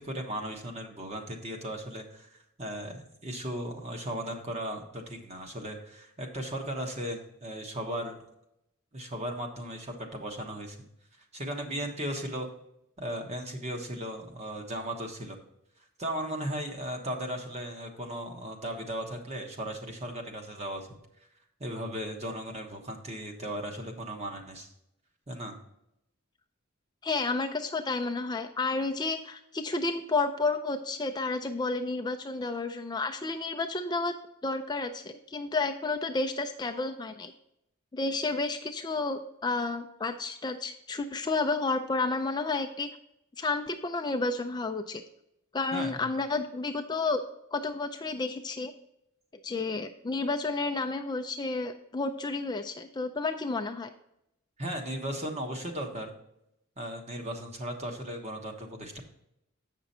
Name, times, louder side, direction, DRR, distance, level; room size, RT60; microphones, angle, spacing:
voice 1, 0.0-2.3 2.6-8.2 8.9-10.9 11.3-12.5 13.0-15.4 16.0-20.9 21.6-24.7 25.3-25.6 45.7-46.1 54.6-56.1 56.8-59.0, right 1 dB, 30° right, 3 dB, 1.3 m, -36 dB
voice 2, 27.0-34.1 34.4-37.3 37.9-42.9 43.4-45.0 45.5-47.2 47.5-48.7 49.4-53.9, left 3 dB, 20° left, 6 dB, 0.4 m, -31 dB
8.1 x 6.0 x 4.2 m, 0.81 s
head